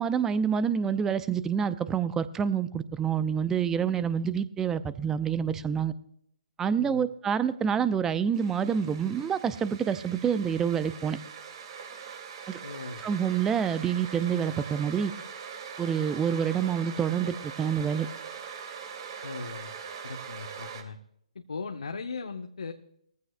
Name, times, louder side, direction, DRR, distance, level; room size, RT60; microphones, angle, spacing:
voice 1, 0.0-5.9 6.6-11.2 12.5-12.6 13.0-15.1 15.8-18.1, right 7 dB, 10° right, 14 dB, 0.6 m, -27 dB
voice 2, 6.8-7.1 12.6-13.0 19.2-19.7 20.0-21.0 21.3-22.7, left 4 dB, 70° left, 5 dB, 1.0 m, -38 dB
sound 1, 8.3-20.8, right 6 dB, 45° right, 2.5 m, -42 dB
21.0 x 15.0 x 2.2 m, 0.72 s
figure-of-eight pair, 135°, 4 cm